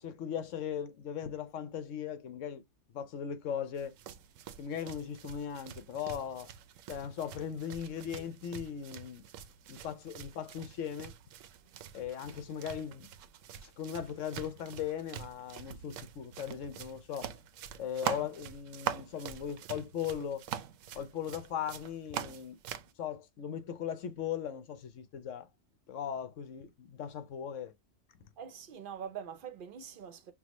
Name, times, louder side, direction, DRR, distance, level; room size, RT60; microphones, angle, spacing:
voice 1, 0.0-2.6 2.9-3.9 4.6-6.5 6.9-9.2 9.7-11.1 11.9-13.1 13.6-17.3 17.8-20.5 20.9-22.6 23.0-25.5 25.9-27.7, left 8 dB, 75° left, 1.1 m, -38 dB
sound 1, 3.8-22.9, right 9 dB, 75° right, 0.9 m, -44 dB
voice 2, 28.4-30.3, right 8 dB, 55° right, 0.7 m, -44 dB
5.9 x 2.2 x 2.9 m
omnidirectional pair, 1.3 m